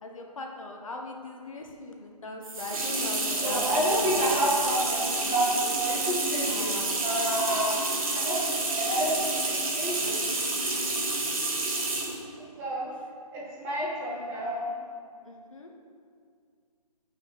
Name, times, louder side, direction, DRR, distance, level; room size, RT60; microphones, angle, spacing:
voice 1, 0.0-3.7 4.0-4.6 6.5-7.1 15.2-15.7, left 2 dB, 55° left, 1 dB, 1.2 m, -40 dB
sound 1, 2.4-12.2, right 2 dB, 60° right, 1.8 m, -29 dB
voice 2, 3.4-6.7 7.0-7.8 8.1-10.2 12.6-12.9 13.3-14.7, right 1 dB, 10° right, -7 dB, 1.7 m, -29 dB
6.7 x 6.1 x 7.4 m, 2.2 s
figure-of-eight pair, 160°, 21 cm